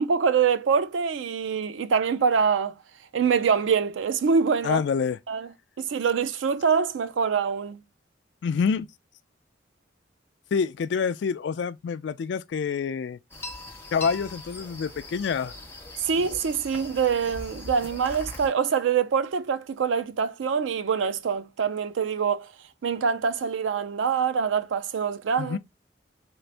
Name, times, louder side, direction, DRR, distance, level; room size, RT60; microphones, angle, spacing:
voice 1, 0.0-2.8 3.1-4.8 5.3-5.5 5.8-7.8 16.0-22.5 22.8-25.6, right 6 dB, 85° right, 0.4 m, -25 dB
voice 2, 4.6-5.2 8.4-8.9 10.5-13.2 13.9-15.6 25.4-25.6, left 6 dB, 65° left, 0.3 m, -27 dB
sound 1, 13.3-18.5, left 2 dB, 10° left, 0.8 m, -41 dB
3.8 x 2.5 x 3.2 m
head